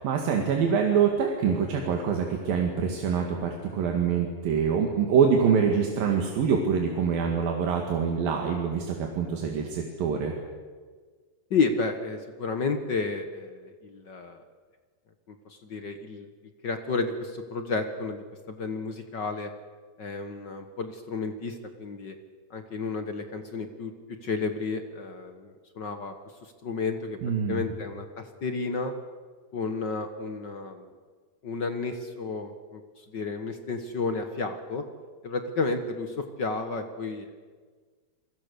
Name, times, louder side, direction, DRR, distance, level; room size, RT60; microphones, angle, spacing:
voice 1, 0.0-10.3 27.2-27.6, right 6 dB, 75° right, 1 dB, 3.9 m, -25 dB
voice 2, 11.5-14.4 15.3-16.3 16.6-19.5 20.0-22.1 22.5-23.9 24.2-26.1 26.4-27.2 27.5-28.9 29.5-30.9 31.4-34.8 35.2-37.4, left 4 dB, 55° left, 7 dB, 1.2 m, -32 dB
29.0 x 22.5 x 6.9 m, 1.5 s
omnidirectional pair, 4.1 m